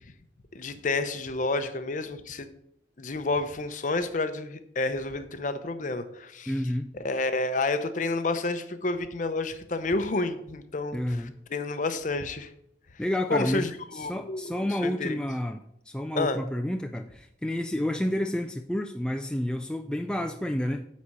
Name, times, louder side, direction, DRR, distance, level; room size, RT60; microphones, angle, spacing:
voice 1, 0.5-2.5 3.0-6.5 6.9-11.3 11.5-12.5 13.3-15.2 16.1-16.4, left 3 dB, 45° left, 10 dB, 0.7 m, -30 dB
voice 2, 6.5-6.9 10.9-11.3 13.0-13.7 13.9-20.9, left 1 dB, 5° left, 5 dB, 0.3 m, -30 dB
9.6 x 4.3 x 6.1 m, 0.73 s
head